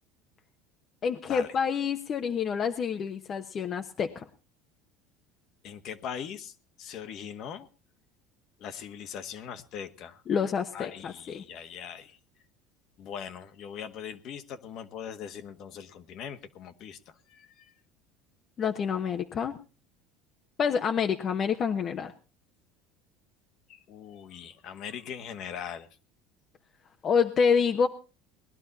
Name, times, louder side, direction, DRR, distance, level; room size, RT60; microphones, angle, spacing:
voice 1, 1.0-4.3 10.3-11.4 18.6-19.6 20.6-22.1 27.0-27.9, left 6 dB, 40° left, 5 dB, 1.2 m, -27 dB
voice 2, 5.6-7.7 8.6-10.2 10.7-12.2 13.0-17.0 17.3-17.7 23.7-25.9, left 8 dB, 55° left, 9 dB, 1.6 m, -41 dB
20.0 x 11.5 x 4.2 m, 0.33 s
supercardioid pair, 120°, 0 cm